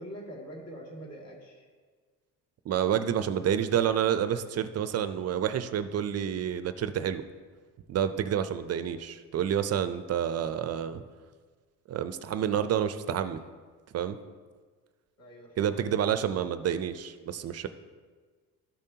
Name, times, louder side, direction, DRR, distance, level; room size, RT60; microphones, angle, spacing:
voice 1, 0.0-1.7 15.2-16.0, right 1 dB, 45° left, -2 dB, 2.3 m, -44 dB
voice 2, 2.7-7.2 7.9-11.0 11.9-13.4 13.9-14.2 15.6-17.7, right 9 dB, 45° right, 11 dB, 0.5 m, -29 dB
13.5 x 5.3 x 2.8 m, 1.5 s
cardioid pair, 105°, 37 cm